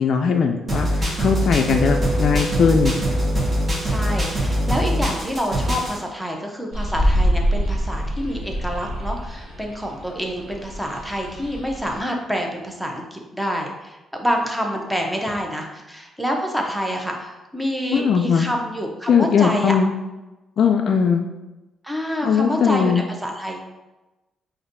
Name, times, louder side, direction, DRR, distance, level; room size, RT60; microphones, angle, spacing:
voice 1, 0.0-3.0 17.9-18.5 19.1-19.9 20.6-21.2 22.2-23.0, left 6 dB, 60° left, 3 dB, 0.3 m, -19 dB
sound 1, 0.7-6.0, equal, 30° right, 1.0 m, -22 dB
Mallet percussion, 1.8-5.5, right 2 dB, 50° right, 0.6 m, -34 dB
voice 2, 3.8-19.7 21.8-22.9 23.2-23.7, equal, 5° right, 1 dB, 0.7 m, -27 dB
sound 2, 6.7-12.0, equal, 85° right, 1.3 m, -25 dB
5.0 x 2.6 x 2.6 m, 1.1 s
cardioid pair, 90°, 0 cm